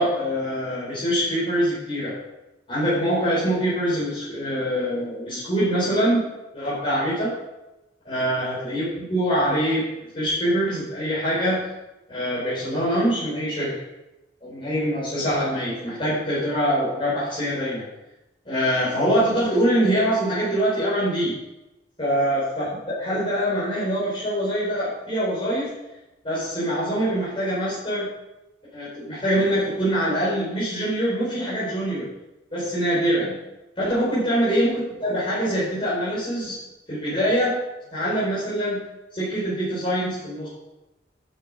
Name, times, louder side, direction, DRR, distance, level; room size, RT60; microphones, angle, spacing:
voice 1, 0.0-2.2 2.7-6.3 6.5-7.4 8.0-9.9 10.1-11.7 12.1-13.8 14.4-17.8 18.4-21.4 22.0-25.8 26.2-28.1 28.7-32.1 32.5-33.4 33.8-36.6 36.9-37.6 37.9-38.8 39.1-40.5, equal, 30° left, -10 dB, 4.9 m, -24 dB
12.5 x 8.1 x 5.2 m, 0.96 s
head